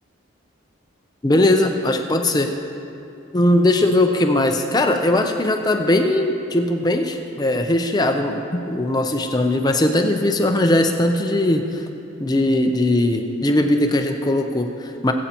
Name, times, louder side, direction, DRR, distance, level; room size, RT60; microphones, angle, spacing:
voice 1, 1.2-2.5 3.3-8.4 8.7-11.8 12.2-15.1, left 1 dB, 20° left, 4 dB, 0.5 m, -19 dB
21.0 x 8.2 x 2.9 m, 2.7 s
head